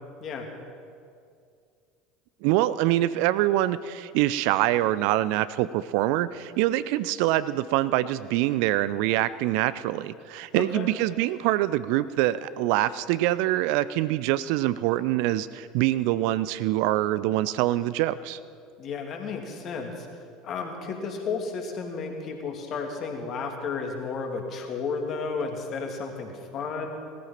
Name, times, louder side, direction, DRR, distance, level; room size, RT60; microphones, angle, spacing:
voice 1, 2.4-18.4, right 15 dB, 60° right, 16 dB, 0.5 m, -25 dB
voice 2, 10.5-10.9 18.8-26.9, left 4 dB, 45° left, 2 dB, 2.7 m, -33 dB
18.0 x 14.0 x 5.9 m, 2.3 s
figure-of-eight pair, 70°, 0 cm